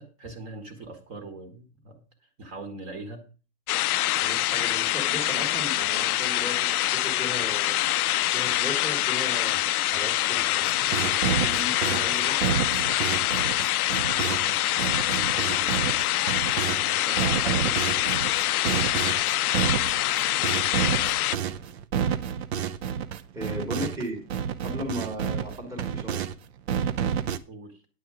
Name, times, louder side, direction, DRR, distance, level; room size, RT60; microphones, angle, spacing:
voice 1, 0.0-2.0 2.4-3.3 14.0-16.0 27.5-27.8, right 2 dB, 30° right, 7 dB, 1.7 m, -42 dB
sound 1, 3.7-21.4, left 15 dB, 65° left, 0.5 m, -25 dB
voice 2, 4.2-7.8 8.3-12.5 16.8-18.0 23.3-24.2 24.6-26.2, equal, 5° right, 1 dB, 1.7 m, -37 dB
sound 2, 10.7-16.8 17.2-24.1 24.3-26.3 26.7-27.4, right 8 dB, 45° right, 0.7 m, -29 dB
9.7 x 7.8 x 4.9 m, 0.34 s
hypercardioid pair, 155°, 47 cm